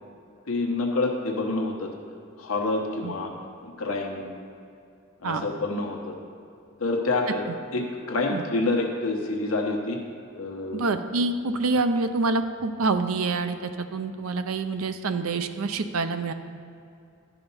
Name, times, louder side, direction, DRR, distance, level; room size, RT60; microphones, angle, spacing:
voice 1, 0.5-1.9 2.4-3.3 3.6-4.3 5.2-6.2 6.8-7.4 7.7-10.0 10.3-10.9, left 2 dB, 80° left, 1 dB, 1.0 m, -27 dB
voice 2, 10.7-16.3, right 3 dB, 85° right, 9 dB, 0.6 m, -26 dB
11.5 x 5.0 x 5.6 m, 2.5 s
head